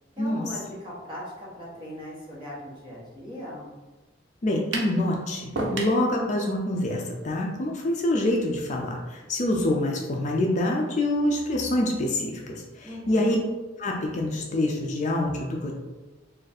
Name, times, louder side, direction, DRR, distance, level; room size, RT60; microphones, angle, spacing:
voice 1, 0.2-3.7 12.8-13.5, equal, 25° right, -6 dB, 1.0 m, -39 dB
voice 2, 4.4-13.4 13.8-15.8, left 1 dB, 40° left, 0 dB, 0.4 m, -26 dB
sound 1, 4.7-5.0 5.6-6.0, right 2 dB, 70° right, 0.6 m, -29 dB
2.5 x 2.4 x 4.0 m, 1.2 s
head